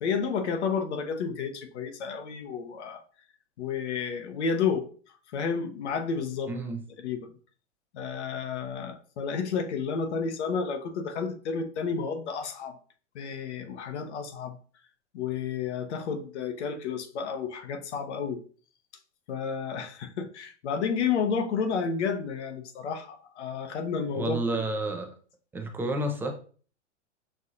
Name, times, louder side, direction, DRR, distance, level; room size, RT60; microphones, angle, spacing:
voice 1, 0.0-3.0 3.6-4.9 5.3-6.5 7.0-7.2 7.9-12.8 13.1-14.6 15.1-18.4 19.3-24.4, left 6 dB, 65° left, 7 dB, 0.8 m, -31 dB
voice 2, 6.5-6.8 24.1-25.1 25.5-26.3, right 2 dB, 5° right, 4 dB, 0.3 m, -30 dB
6.2 x 2.7 x 2.5 m, 0.42 s
hypercardioid pair, 105°, 37 cm